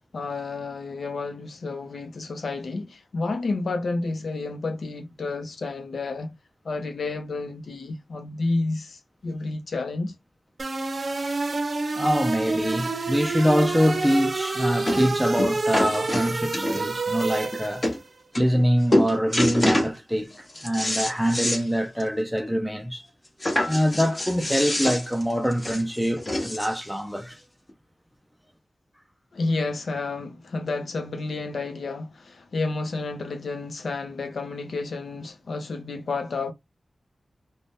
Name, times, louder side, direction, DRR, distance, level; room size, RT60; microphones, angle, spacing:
voice 1, 0.1-6.3 6.6-10.1 29.3-36.5, left 3 dB, 80° left, 0.6 m, -30 dB
sound 1, 10.6-18.0, right 3 dB, 60° right, 0.5 m, -28 dB
voice 2, 11.9-17.9 18.4-23.0 23.7-27.4, equal, ahead, 0.4 m, -24 dB
sound 2, 14.1-14.2 14.9-15.1 15.4-17.0 17.5-17.6 17.8-18.0 18.3-18.7 18.9-19.9 20.3-21.6 22.0-22.1 22.4-22.5 23.4-26.9 27.7-27.8, left 1 dB, 35° left, 0.9 m, -26 dB
2.6 x 2.1 x 3.4 m
wide cardioid pair, 95°, 0 cm